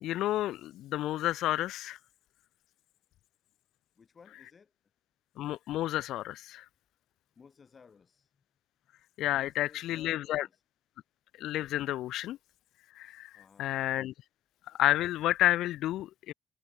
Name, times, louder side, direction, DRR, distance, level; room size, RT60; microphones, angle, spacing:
voice 1, 0.0-2.0 5.4-6.6 9.2-10.5 11.4-12.4 13.0-14.1 14.8-16.3, left 14 dB, 85° left, 0.6 m, -30 dB
voice 2, 3.9-4.7 7.3-8.4 9.3-10.6 13.3-13.8, left 5 dB, 40° left, 6.8 m, -58 dB
cardioid pair, 90°, 0 cm